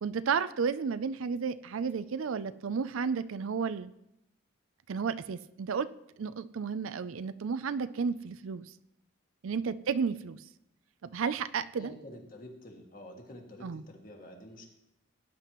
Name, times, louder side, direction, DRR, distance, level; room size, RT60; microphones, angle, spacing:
voice 1, 0.0-3.9 4.9-5.9 6.2-8.6 9.4-10.4 11.0-11.9 13.6-13.8, right 6 dB, 75° right, 13 dB, 0.4 m, -32 dB
voice 2, 11.8-14.7, left 1 dB, 40° left, 1 dB, 1.9 m, -48 dB
18.0 x 9.7 x 3.0 m, 0.83 s
head